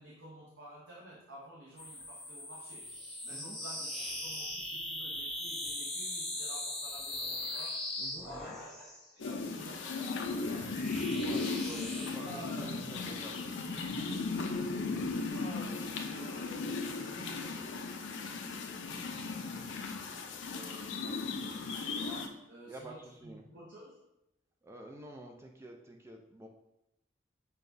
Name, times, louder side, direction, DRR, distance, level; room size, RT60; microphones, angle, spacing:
voice 1, 0.0-3.0 3.2-7.9 8.3-10.9 12.0-12.7 14.9-19.8 20.5-24.1, right 1 dB, 85° right, -5 dB, 0.7 m, -52 dB
sound 1, 1.8-9.1 10.0-12.1, left 1 dB, ahead, 0.7 m, -40 dB
voice 2, 8.0-8.6 11.1-13.5 22.7-23.5 24.6-26.5, right 1 dB, 15° right, 2 dB, 0.3 m, -49 dB
sound 2, 9.2-22.3, left 3 dB, 80° left, 0.5 m, -36 dB
6.6 x 2.3 x 2.6 m, 0.86 s
head